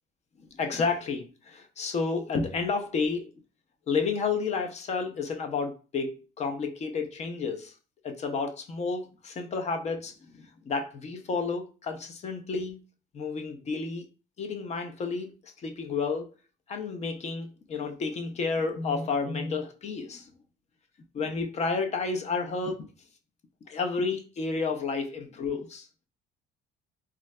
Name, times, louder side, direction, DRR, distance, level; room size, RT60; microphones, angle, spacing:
voice 1, 0.4-3.3 3.9-7.7 8.0-12.8 13.1-14.1 14.4-16.3 16.7-20.3 21.1-22.9 23.7-25.9, left 4 dB, 40° left, 0.5 m, -31 dB
3.7 x 2.3 x 2.2 m
cardioid pair, 110°, 17 cm